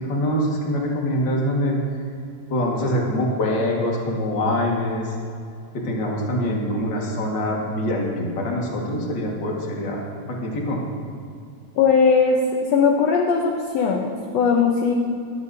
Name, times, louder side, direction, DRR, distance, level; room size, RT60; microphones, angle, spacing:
voice 1, 0.1-1.8 2.5-5.1 5.7-10.0 10.3-10.8, equal, 40° left, -1 dB, 2.1 m, -24 dB
voice 2, 11.8-12.4 12.7-14.9, left 5 dB, 70° left, 1 dB, 1.8 m, -19 dB
19.0 x 13.0 x 2.7 m, 2.5 s
omnidirectional pair, 3.4 m